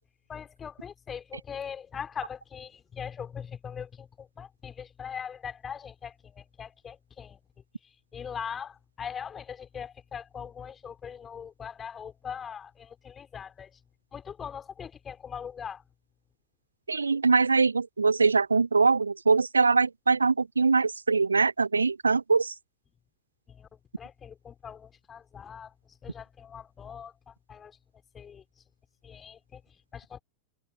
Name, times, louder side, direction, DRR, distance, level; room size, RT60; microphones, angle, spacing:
voice 1, 0.3-7.4 7.8-13.8 14.1-15.8 23.5-27.8 28.1-28.4 29.0-30.2, left 7 dB, 20° left, 4.0 m, -41 dB
voice 2, 16.9-22.5, right 4 dB, 75° right, 0.7 m, -23 dB
figure-of-eight pair, 90°, 0 cm